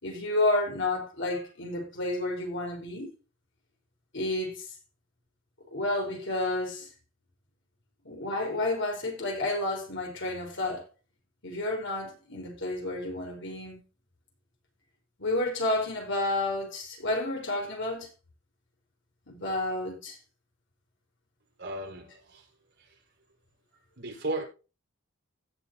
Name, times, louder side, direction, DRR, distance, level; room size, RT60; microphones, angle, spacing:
voice 1, 0.0-3.1 4.1-4.7 5.7-6.9 8.0-10.8 11.4-13.8 15.2-18.1 19.3-20.2, left 2 dB, 55° left, 4.7 m, -30 dB
voice 2, 21.6-22.5 22.8-22.9 24.0-24.4, right 2 dB, 55° right, 5.2 m, -35 dB
17.0 x 6.6 x 2.9 m
head